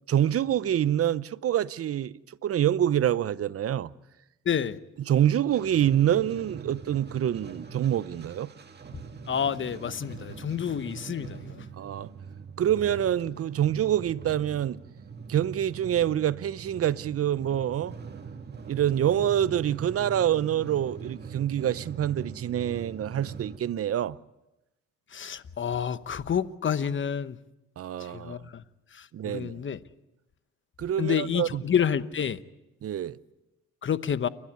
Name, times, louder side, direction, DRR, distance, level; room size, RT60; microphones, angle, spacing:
voice 1, 0.1-3.9 5.1-8.5 11.8-12.1 12.6-14.8 15.3-17.9 18.7-24.2 27.8-28.4 29.1-29.5 30.8-31.6 32.8-33.2, right 10 dB, 50° right, 0.7 m, -26 dB
voice 2, 4.4-4.8 9.3-11.7 25.1-27.4 28.0-28.6 28.9-29.8 31.0-32.4 33.8-34.3, left 8 dB, 40° left, 1.0 m, -29 dB
sound 1, 5.5-23.6, right 6 dB, 35° right, 2.0 m, -42 dB
29.5 x 12.0 x 9.6 m
cardioid pair, 90°, 30 cm